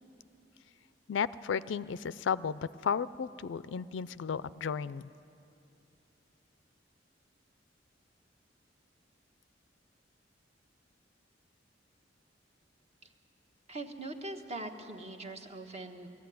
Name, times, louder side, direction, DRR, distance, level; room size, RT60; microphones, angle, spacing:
voice 1, 1.1-5.1, left 6 dB, 70° left, 17 dB, 0.4 m, -34 dB
voice 2, 13.7-16.1, right 2 dB, 35° right, 5 dB, 1.3 m, -42 dB
19.5 x 14.5 x 9.4 m, 2.7 s
head